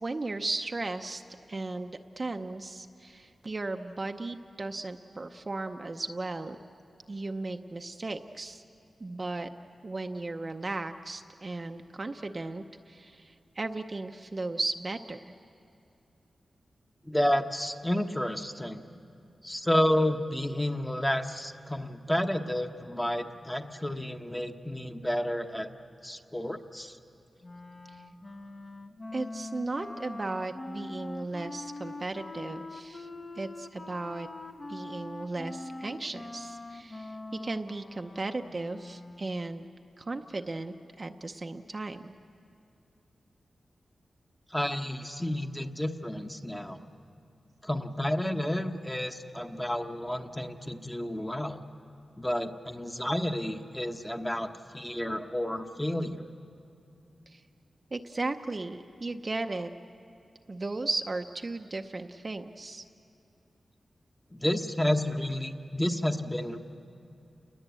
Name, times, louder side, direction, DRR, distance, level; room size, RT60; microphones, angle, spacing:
voice 1, 0.0-1.2 1.5-6.6 7.1-8.6 9.0-9.5 9.8-15.3 29.1-33.1 33.4-34.3 34.7-39.7 40.0-42.1 57.3-57.4 57.9-59.7 60.5-62.8, right 2 dB, 30° right, 6 dB, 0.7 m, -36 dB
voice 2, 17.0-18.8 19.4-25.7 26.0-27.0 44.5-46.8 47.6-51.6 52.2-56.2 64.3-66.6, left 1 dB, 10° left, 5 dB, 1.0 m, -30 dB
Wind instrument woodwind instrument, 27.4-39.5, left 2 dB, 30° left, 1.0 m, -43 dB
29.5 x 20.5 x 8.3 m, 2.7 s
wide cardioid pair, 135°, 0 cm